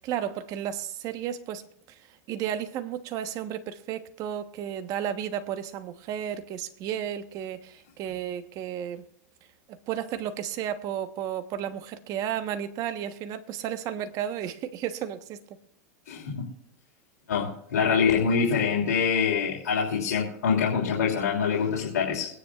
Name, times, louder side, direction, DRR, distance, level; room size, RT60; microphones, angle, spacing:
voice 1, 0.0-2.0 2.3-9.0 9.7-15.4, right 10 dB, 45° right, 1.2 m, -33 dB
voice 2, 16.1-16.4 17.3-22.3, left 6 dB, 90° left, 3.0 m, -25 dB
24.0 x 10.0 x 2.5 m
supercardioid pair, 130°, 9 cm